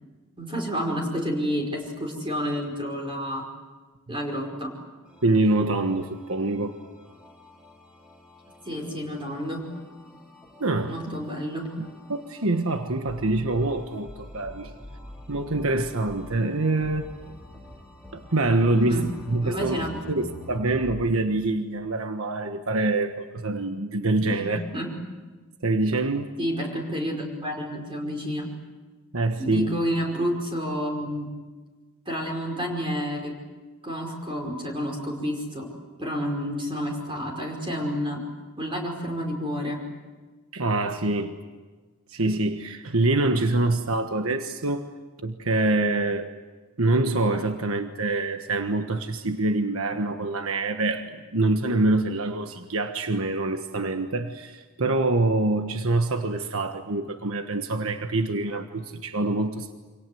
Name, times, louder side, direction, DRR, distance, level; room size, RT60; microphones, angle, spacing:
voice 1, 0.4-3.4 4.1-4.7 8.6-9.7 10.9-11.7 18.7-19.1 19.4-20.1 24.2-24.9 26.4-28.5 29.4-31.3 32.0-33.4 33.8-35.7 36.0-38.2 38.6-39.8, equal, 25° right, 1 dB, 5.2 m, -30 dB
sound 1, 5.1-21.0, left 1 dB, 5° right, 4.5 m, -46 dB
voice 2, 5.2-6.8 10.6-11.2 11.8-14.7 15.3-17.1 18.1-24.6 25.6-26.4 29.1-29.7 40.5-41.4 42.1-44.9 45.2-46.3 46.8-59.7, right 2 dB, 70° right, 7 dB, 1.4 m, -25 dB
29.0 x 26.0 x 7.9 m, 1.3 s
head